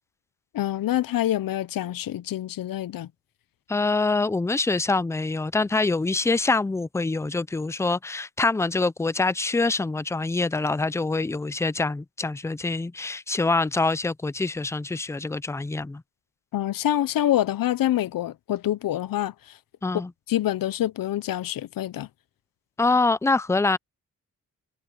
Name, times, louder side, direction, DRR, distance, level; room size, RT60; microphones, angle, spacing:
voice 1, 0.5-3.1 16.5-19.3 20.3-22.1, left 13 dB, 85° left, 0.6 m, -26 dB
voice 2, 3.7-16.0 19.8-20.1 22.8-23.8, left 3 dB, 10° left, 0.3 m, -25 dB
wide cardioid pair, 130°, 33 cm